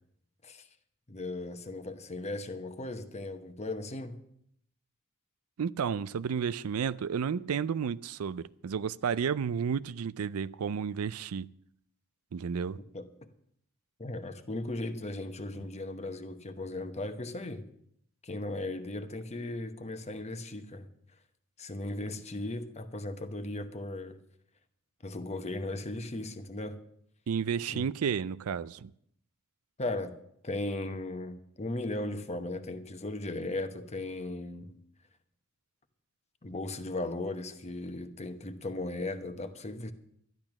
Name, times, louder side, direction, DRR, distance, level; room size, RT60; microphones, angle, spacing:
voice 1, 1.1-4.2 12.9-13.1 14.0-17.6 18.2-20.9 21.6-24.2 25.0-26.8 27.7-27.9 29.8-30.1 30.4-34.8 36.4-39.9, left 2 dB, 30° left, 1.0 m, -37 dB
voice 2, 5.6-11.5 12.3-12.8 27.3-28.9, right 7 dB, 75° right, 0.4 m, -32 dB
12.0 x 11.0 x 5.9 m
head